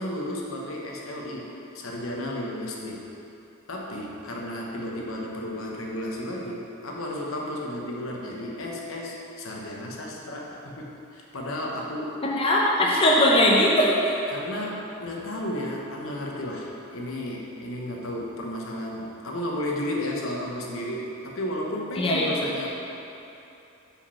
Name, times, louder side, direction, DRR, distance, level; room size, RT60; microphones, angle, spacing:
voice 1, 0.0-3.0 3.7-12.2 14.3-22.7, left 1 dB, 75° left, -2 dB, 1.0 m, -33 dB
voice 2, 12.2-14.2 22.0-22.5, left 1 dB, 25° left, -4 dB, 0.6 m, -20 dB
5.2 x 5.0 x 5.7 m, 2.9 s
head